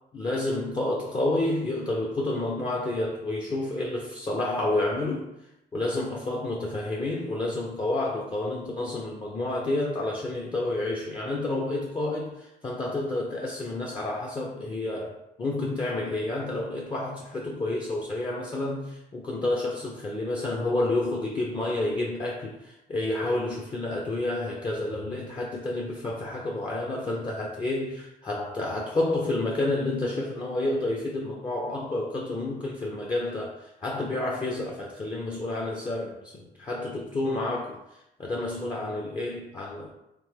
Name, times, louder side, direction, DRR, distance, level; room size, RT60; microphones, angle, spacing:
voice 1, 0.1-5.3 5.7-15.1 15.4-37.8 38.2-39.9, left 2 dB, 25° left, -1 dB, 0.6 m, -29 dB
3.4 x 3.3 x 3.3 m, 0.85 s
cardioid pair, 110°, 17 cm